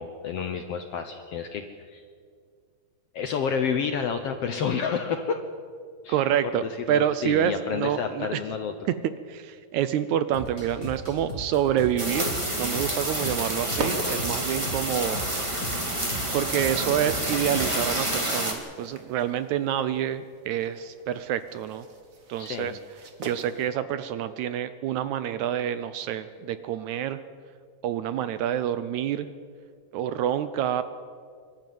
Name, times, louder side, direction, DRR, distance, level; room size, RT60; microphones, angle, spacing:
voice 1, 0.0-2.0 3.1-5.4 6.0-6.2 6.6-8.7 22.4-22.8, left 6 dB, 70° left, 7 dB, 1.5 m, -30 dB
voice 2, 6.1-8.4 9.0-15.2 15.8-15.9 16.3-21.9 22.3-22.8 23.2-27.2 27.8-29.3 29.9-30.8, right 10 dB, 75° right, 13 dB, 1.8 m, -27 dB
sound 1, 10.3-18.0, equal, 30° left, 2.5 m, -38 dB
sound 2, 12.0-18.5, right 1 dB, 10° right, 1.7 m, -29 dB
sound 3, 13.0-23.7, right 3 dB, 40° right, 1.3 m, -41 dB
23.5 x 13.0 x 9.4 m, 2.1 s
omnidirectional pair, 3.8 m